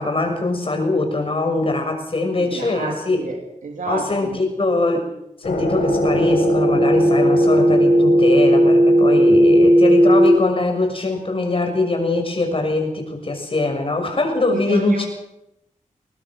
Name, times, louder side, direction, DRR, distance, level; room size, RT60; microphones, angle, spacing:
voice 1, 0.0-3.2 3.9-5.1 5.4-15.1, left 2 dB, 40° left, 4 dB, 6.5 m, -22 dB
voice 2, 2.4-4.4 14.5-15.0, right 3 dB, 75° right, 3 dB, 3.1 m, -29 dB
sound 1, 5.4-10.3, equal, 90° left, 6.9 m, -15 dB
22.0 x 20.0 x 6.2 m, 0.83 s
cardioid pair, 65°, 14 cm